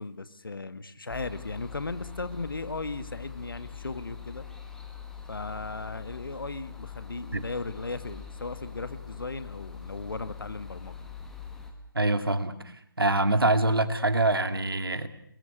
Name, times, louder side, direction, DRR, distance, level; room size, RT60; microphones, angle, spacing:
voice 1, 0.0-4.5 5.3-11.0, left 3 dB, 70° left, 12 dB, 1.9 m, -36 dB
sound 1, 1.1-11.7, left 7 dB, 5° left, 1.9 m, -43 dB
voice 2, 11.9-12.5 13.0-15.1, right 2 dB, 80° right, 10 dB, 2.3 m, -24 dB
30.0 x 21.0 x 6.7 m, 0.67 s
figure-of-eight pair, 150°, 12 cm